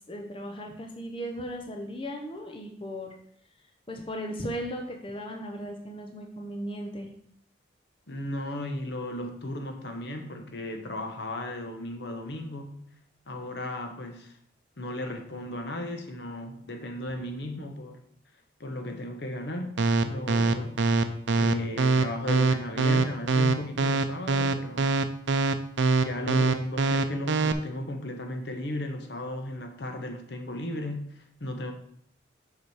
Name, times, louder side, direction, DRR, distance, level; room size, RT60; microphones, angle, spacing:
voice 1, 0.1-3.2 3.9-7.1, equal, 25° left, 3 dB, 0.8 m, -36 dB
voice 2, 8.1-12.8 13.3-14.4 14.8-18.0 18.6-19.7 20.0-21.0 21.3-24.9 26.0-31.7, left 1 dB, 60° left, 5 dB, 1.0 m, -35 dB
sound 1, 19.8-27.5, right 3 dB, 75° right, 0.6 m, -23 dB
7.0 x 5.0 x 4.8 m, 0.66 s
head